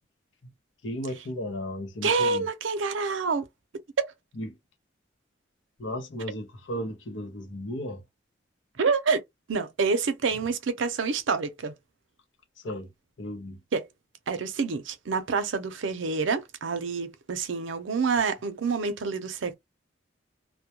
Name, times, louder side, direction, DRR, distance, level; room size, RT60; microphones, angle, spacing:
voice 1, 0.8-2.5 4.4-4.5 5.8-8.0 12.6-12.9 13.2-13.6, equal, 80° left, 0.7 m, -35 dB
voice 2, 2.0-3.4 4.0-4.1 8.8-9.2 9.5-11.7 13.7-13.9 14.3-19.5, right 4 dB, 85° right, 0.5 m, -27 dB
2.2 x 2.1 x 2.8 m
head